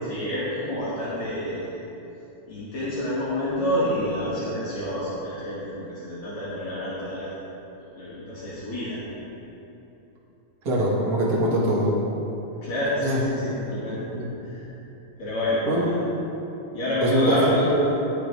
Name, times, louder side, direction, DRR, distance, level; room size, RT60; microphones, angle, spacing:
voice 1, 0.0-1.7 2.5-7.3 8.0-9.0 12.6-14.1 14.5-14.6 15.2-15.9 16.7-17.9, equal, 65° left, -10 dB, 3.2 m, -28 dB
voice 2, 10.6-11.9 13.0-13.2 13.9-14.3 15.7-16.2 17.0-18.1, right 1 dB, 30° right, -6 dB, 2.2 m, -23 dB
19.0 x 6.9 x 3.3 m, 3.0 s
omnidirectional pair, 3.4 m